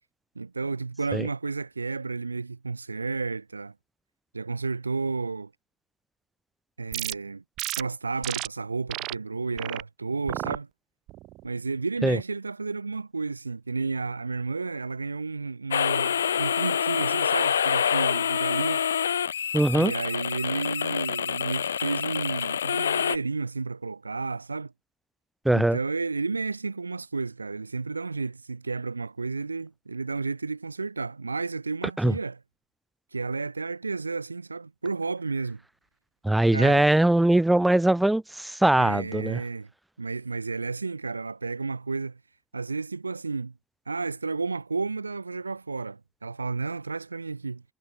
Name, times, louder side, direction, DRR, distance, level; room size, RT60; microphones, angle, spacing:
voice 1, 0.4-3.7 4.3-5.5 6.8-7.4 7.7-10.7 11.4-18.9 19.7-24.7 25.5-32.4 33.1-35.6 36.5-36.9 38.8-39.7 40.0-42.2 42.5-43.5 43.9-47.6, right 4 dB, 85° right, 2.4 m, -32 dB
sound 1, 6.9-7.1 7.6-7.8 8.2-8.5 8.9-9.1 9.6-9.8 10.3-10.6 11.1-11.4, right 17 dB, 55° right, 2.4 m, -33 dB
sound 2, 15.7-23.2, left 8 dB, 80° left, 0.4 m, -26 dB
voice 2, 19.5-19.9 25.4-25.8 32.0-32.1 36.2-39.4, right 1 dB, 10° right, 0.8 m, -21 dB
figure-of-eight pair, 55°, 0 cm